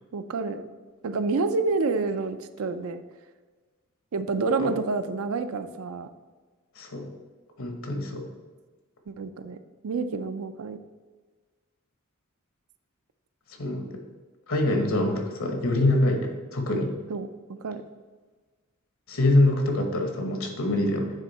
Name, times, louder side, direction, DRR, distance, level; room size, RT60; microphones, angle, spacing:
voice 1, 0.1-0.6 1.0-3.0 4.1-6.1 9.1-9.6 9.8-10.8 17.1-17.3 17.6-17.8, right 4 dB, 90° right, 10 dB, 0.5 m, -28 dB
voice 2, 6.8-7.1 7.6-8.3 13.6-14.0 14.5-16.9 19.1-21.1, left 1 dB, 80° left, 4 dB, 1.2 m, -24 dB
9.1 x 3.6 x 4.2 m, 1.4 s
head